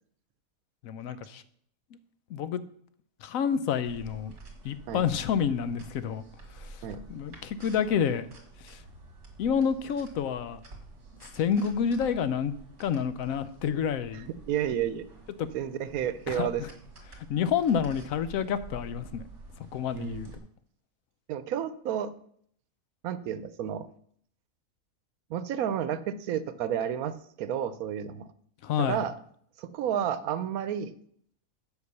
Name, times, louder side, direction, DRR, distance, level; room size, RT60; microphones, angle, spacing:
voice 1, 0.8-1.4 2.3-2.6 3.2-4.3 4.6-6.2 6.5-6.8 7.1-8.3 8.6-8.8 9.4-10.6 11.3-12.5 12.8-14.3 15.4-15.5 16.3-16.7 17.3-19.3 19.7-20.3 28.6-29.1, left 7 dB, 75° left, 13 dB, 1.1 m, -29 dB
sound 1, 3.9-20.4, right 3 dB, 55° right, 2.2 m, -49 dB
voice 2, 14.5-15.1 15.5-16.6 19.9-20.4 21.3-22.1 23.0-23.9 25.3-28.3 28.8-29.1 29.6-30.9, right 9 dB, 85° right, 14 dB, 1.1 m, -31 dB
8.1 x 5.1 x 6.8 m, 0.63 s
omnidirectional pair, 1.5 m